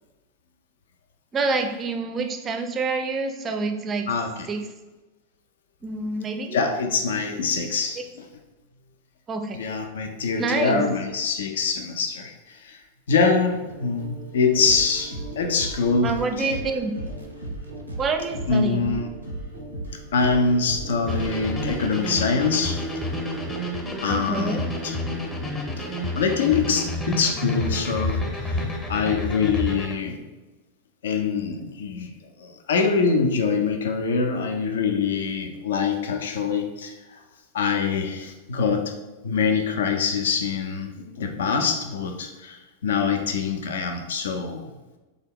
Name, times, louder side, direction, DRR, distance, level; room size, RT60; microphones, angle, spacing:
voice 1, 1.3-4.1 4.5-4.6 5.8-6.6 9.3-9.6 10.4-10.8 16.0-16.9 18.0-18.9 24.1-24.7, right 3 dB, 25° right, 6 dB, 0.4 m, -27 dB
voice 2, 4.1-4.5 6.5-8.3 9.5-12.8 13.1-16.6 18.5-19.1 20.1-22.8 24.0-25.0 26.2-30.2 31.0-32.1 32.4-37.2 37.5-39.0 39.2-44.7, left 5 dB, 60° left, 5 dB, 0.4 m, -24 dB
sound 1, 13.7-23.7, right 2 dB, 90° left, 0.7 m, -42 dB
sound 2, 14.6-24.3, right 1 dB, 90° right, 0.5 m, -37 dB
sound 3, 21.1-29.9, left 1 dB, 20° left, 0.7 m, -29 dB
3.4 x 2.3 x 3.5 m, 1.1 s
figure-of-eight pair, 90°, 0 cm